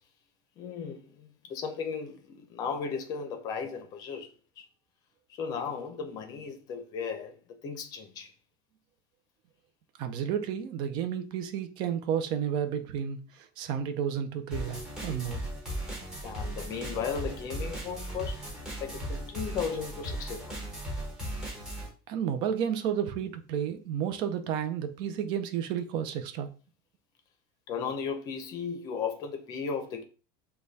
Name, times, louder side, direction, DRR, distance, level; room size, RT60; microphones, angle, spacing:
voice 1, 0.6-4.3 4.6-4.7 5.4-7.4 7.6-8.3 16.2-18.4 18.8-20.6 27.7-30.0, left 6 dB, 30° left, 0.7 m, -35 dB
voice 2, 10.0-15.4 22.1-26.5, right 8 dB, 40° right, 0.6 m, -31 dB
sound 1, 14.5-21.9, equal, 5° right, 1.2 m, -37 dB
5.2 x 2.3 x 4.0 m
cardioid pair, 175°, 12 cm